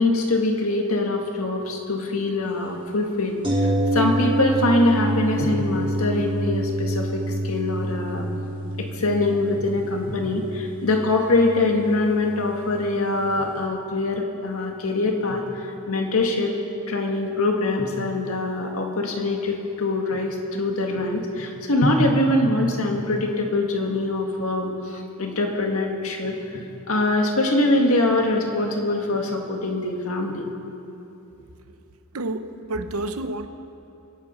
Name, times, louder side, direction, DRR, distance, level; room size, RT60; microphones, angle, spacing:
voice 1, 0.0-8.3 8.8-16.5 16.9-30.5, left 2 dB, 75° left, 2 dB, 1.9 m, -23 dB
sound 1, 3.4-13.3 13.6-13.7, right 1 dB, 25° right, 1.7 m, -27 dB
voice 2, 32.1-33.5, right 2 dB, 85° right, 9 dB, 0.9 m, -29 dB
24.5 x 8.9 x 5.6 m, 2.8 s
head